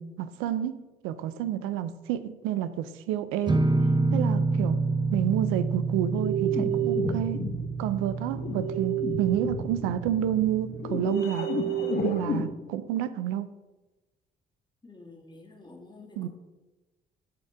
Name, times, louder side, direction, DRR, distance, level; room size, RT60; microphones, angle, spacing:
voice 1, 0.0-3.6 4.1-4.8 5.1-7.5 7.8-11.5 12.0-13.5 16.2-16.3, right 11 dB, 80° right, 0.5 m, -29 dB
sound 1, 3.5-11.0, right 3 dB, 20° right, 0.8 m, -29 dB
sound 2, 6.1-12.5, right 3 dB, 50° left, 1.2 m, -30 dB
voice 2, 14.8-16.3, left 3 dB, 20° left, 2.1 m, -49 dB
9.5 x 4.3 x 4.9 m
hypercardioid pair, 50°, 21 cm